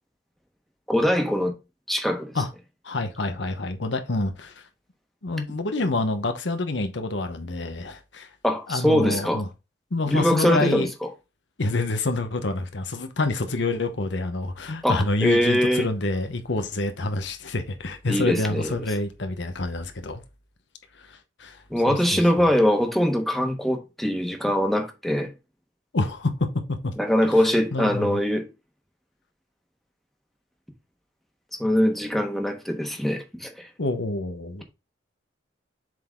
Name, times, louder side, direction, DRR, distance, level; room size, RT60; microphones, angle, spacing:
voice 1, 0.9-1.5 1.9-2.3 8.4-9.4 10.1-11.1 14.8-15.9 18.1-18.7 21.7-25.3 27.0-28.5 31.6-33.7, equal, ahead, 1.3 m, -22 dB
voice 2, 2.8-4.7 5.2-8.3 8.7-9.4 9.9-10.9 11.6-20.2 21.0-22.5 25.9-26.9 27.2-27.3 27.7-28.2 33.8-34.6, left 2 dB, 70° left, 1.0 m, -27 dB
7.5 x 4.0 x 3.7 m
head